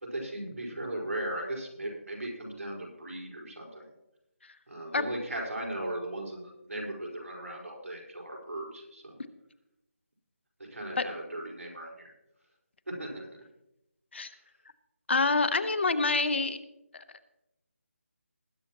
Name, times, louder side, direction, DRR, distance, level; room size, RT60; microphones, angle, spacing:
voice 1, 0.0-3.9 4.7-9.2 10.7-12.1 12.9-13.4, right 1 dB, 80° right, -1 dB, 4.8 m, -37 dB
voice 2, 15.1-16.6 16.9-17.0, left 3 dB, 55° left, 11 dB, 1.0 m, -26 dB
20.0 x 9.4 x 3.0 m, 0.87 s
figure-of-eight pair, 170°, 8 cm